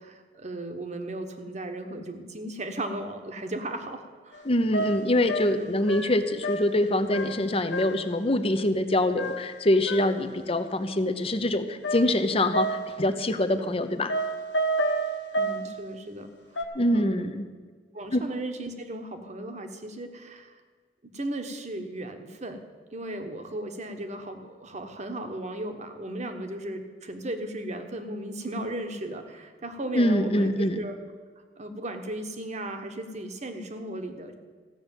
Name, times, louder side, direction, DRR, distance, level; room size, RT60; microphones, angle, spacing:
voice 1, 0.0-4.4 5.6-5.7 15.3-17.3 17.9-20.6 21.1-22.6 22.9-30.9 31.6-34.3, right 1 dB, 40° right, 6 dB, 1.3 m, -36 dB
sound 1, 4.3-4.4 4.7-6.8 7.1-7.5 7.7-8.1 9.2-10.2 11.8-13.0 14.1-15.7 16.6-16.7, right 2 dB, 90° left, 1.5 m, -30 dB
voice 2, 4.4-14.1 16.7-17.5 18.1-18.3 29.9-30.8, left 1 dB, 35° left, 9 dB, 0.8 m, -24 dB
15.0 x 6.6 x 9.1 m, 1.5 s
head